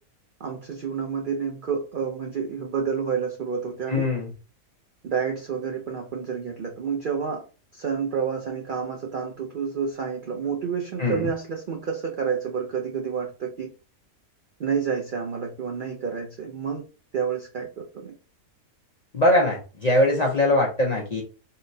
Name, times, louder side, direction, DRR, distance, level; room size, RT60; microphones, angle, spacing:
voice 1, 0.4-4.0 5.0-7.4 7.7-13.7 14.6-16.8 17.1-18.1, right 6 dB, 65° right, 1 dB, 0.5 m, -29 dB
voice 2, 3.9-4.3 11.0-11.3 19.1-21.2, left 1 dB, 45° left, -2 dB, 0.5 m, -21 dB
3.8 x 2.1 x 2.6 m, 0.34 s
omnidirectional pair, 1.4 m